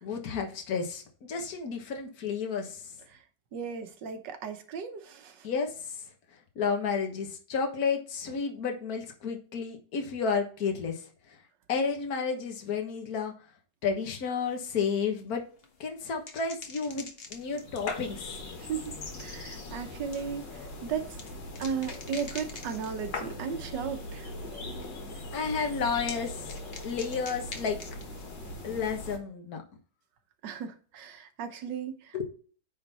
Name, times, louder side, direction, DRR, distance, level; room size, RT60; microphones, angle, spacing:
voice 1, 0.0-2.9 5.4-6.0 6.5-11.4 11.7-13.3 13.8-15.4 15.8-18.4 25.3-26.5 26.8-27.8 28.6-29.6 32.1-32.3, left 5 dB, 55° left, 1.8 m, -31 dB
voice 2, 3.5-5.5 18.6-18.9 19.2-21.1 21.6-24.3 30.4-32.3, right 7 dB, 80° right, 1.6 m, -36 dB
sound 1, 14.4-23.7 24.0-24.6 24.8-28.2, left 4 dB, 40° left, 1.1 m, -44 dB
sound 2, 17.3-29.2, left 1 dB, 90° left, 2.5 m, -41 dB
9.5 x 3.9 x 4.1 m
omnidirectional pair, 1.9 m